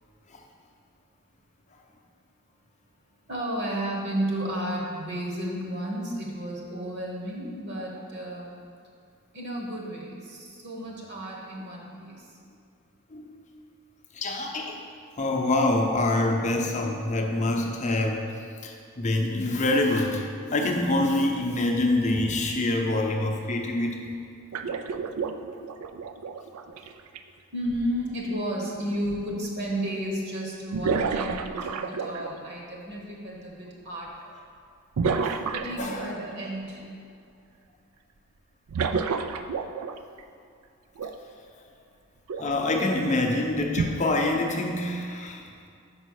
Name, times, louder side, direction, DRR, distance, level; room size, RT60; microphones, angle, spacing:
voice 1, 3.3-8.5 9.3-12.2 27.5-34.1 35.5-36.8, equal, 50° right, -2 dB, 1.2 m, -32 dB
voice 2, 14.1-14.8 15.2-24.0 35.2-35.3 35.8-36.1 42.4-45.4, left 2 dB, 30° left, 1 dB, 0.7 m, -26 dB
sound 1, 24.5-27.2 29.1-29.2 30.7-32.5 35.0-36.3 38.7-40.2 41.0-41.1 42.3-42.5 43.8-43.9, right 5 dB, 85° right, 0.4 m, -29 dB
5.5 x 5.1 x 6.3 m, 2.4 s
head